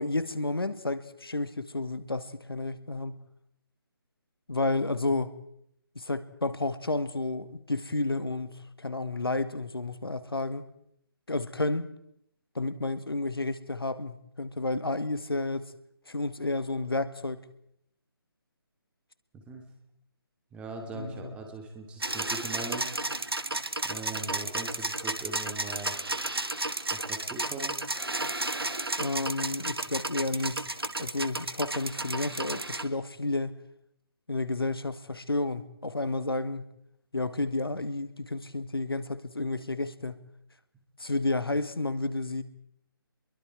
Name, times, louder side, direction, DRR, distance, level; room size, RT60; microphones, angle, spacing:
voice 1, 0.0-3.2 4.5-5.4 6.0-10.7 11.3-11.9 12.6-15.7 16.1-17.5 20.9-21.3 29.0-33.5 34.3-36.7 37.1-40.2 41.0-42.4, left 2 dB, 75° left, 1.7 m, -31 dB
voice 2, 20.5-22.9 23.8-25.9 26.9-27.7, right 3 dB, 10° right, 2.6 m, -40 dB
sound 1, 22.0-32.8, right 2 dB, 80° right, 1.8 m, -33 dB
26.5 x 22.5 x 4.7 m
figure-of-eight pair, 145°, 12 cm